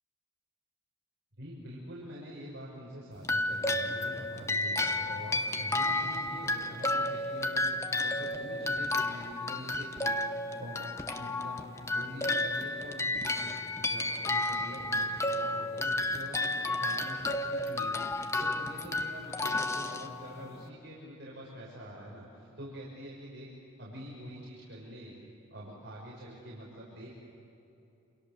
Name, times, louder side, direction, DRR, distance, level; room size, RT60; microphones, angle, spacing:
voice 1, 1.4-23.5 23.8-25.1 25.5-27.1, equal, 55° right, -6 dB, 6.4 m, -45 dB
sound 1, 3.2-20.6, left 2 dB, 15° left, 0.8 m, -32 dB
28.5 x 27.5 x 7.0 m, 2.9 s
head